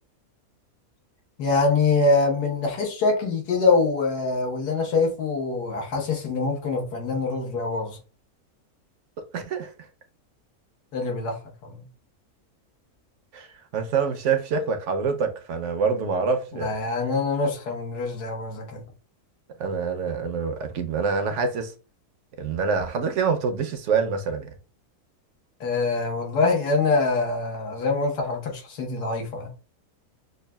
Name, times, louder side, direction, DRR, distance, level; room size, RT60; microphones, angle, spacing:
voice 1, 1.4-8.0 10.9-11.4 11.6-11.8 16.5-18.8 25.6-29.5, left 3 dB, 90° left, 1.6 m, -24 dB
voice 2, 9.3-9.7 13.3-13.5 13.7-16.7 19.6-21.7 22.4-24.5, right 5 dB, 65° right, 0.8 m, -26 dB
6.3 x 2.3 x 2.2 m
omnidirectional pair, 1.6 m